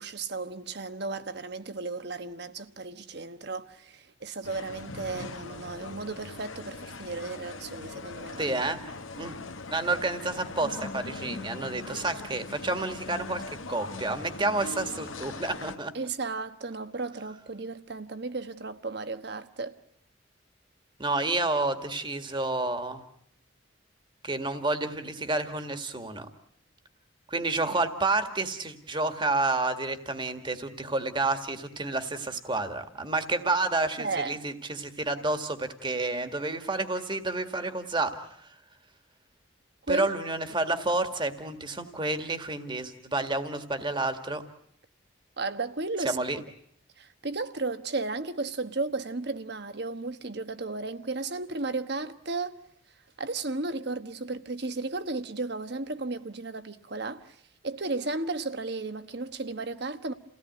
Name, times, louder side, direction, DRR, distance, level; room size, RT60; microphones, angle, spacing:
voice 1, 0.0-8.6 15.9-19.8 34.0-34.4 39.9-40.1 45.4-46.2 47.0-52.6 53.2-57.4 57.6-60.1, right 3 dB, 55° right, 1.2 m, -34 dB
sound 1, 4.4-15.8, left 3 dB, 90° left, 1.6 m, -41 dB
voice 2, 8.4-8.8 9.2-9.4 9.7-15.9 21.0-23.0 24.2-26.3 27.3-38.3 39.9-44.4 46.0-46.4, right 2 dB, 25° right, 1.9 m, -30 dB
29.5 x 17.5 x 9.4 m
head